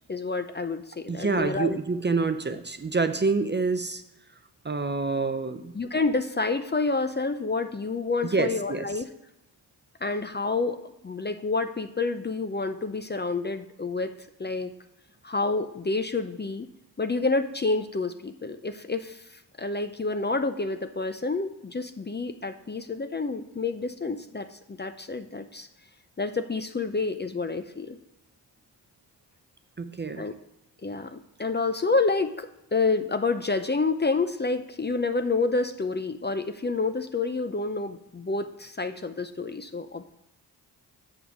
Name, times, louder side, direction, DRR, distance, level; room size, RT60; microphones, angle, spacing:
voice 1, 0.1-1.8 5.7-9.1 10.0-10.8 11.0-14.1 14.4-14.7 15.2-16.7 17.0-19.2 19.6-25.7 26.2-28.0 30.2-30.3 30.8-40.1, left 3 dB, 25° left, 9 dB, 0.5 m, -28 dB
voice 2, 1.1-4.0 4.6-5.7 8.2-8.9 29.8-30.3, right 4 dB, 25° right, 9 dB, 0.5 m, -27 dB
7.2 x 5.9 x 4.7 m, 0.87 s
cardioid pair, 60°, 42 cm